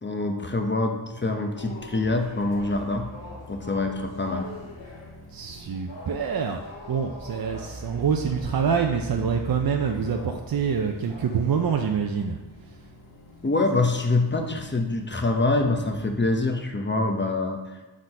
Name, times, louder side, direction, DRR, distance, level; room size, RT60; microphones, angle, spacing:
voice 1, 0.0-3.1 3.5-4.5 13.4-17.8, left 2 dB, 25° left, 4 dB, 0.9 m, -25 dB
sound 1, 1.5-11.9 12.4-12.7 13.3-13.6 14.0-14.3, left 2 dB, 65° left, 1.9 m, -45 dB
sound 2, 1.6-16.3, left 2 dB, 40° left, 1.7 m, -44 dB
voice 2, 5.3-6.6 6.9-12.4, right 6 dB, 50° right, 3 dB, 0.5 m, -26 dB
6.1 x 4.2 x 5.3 m, 1.1 s
wide cardioid pair, 75°, 48 cm